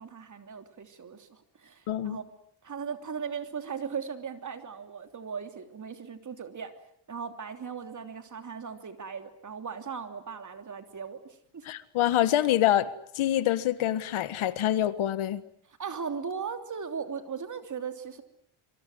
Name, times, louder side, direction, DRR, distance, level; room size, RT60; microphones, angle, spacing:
voice 1, 0.0-2.2 2.6-6.7 7.1-11.2 11.5-11.6 15.7-18.2, right 6 dB, 35° right, 7 dB, 3.1 m, -38 dB
voice 2, 1.9-2.2 11.6-12.9 13.1-15.4, left 12 dB, 75° left, 14 dB, 1.6 m, -26 dB
26.5 x 24.0 x 7.9 m, 0.67 s
cardioid pair, 130°, 49 cm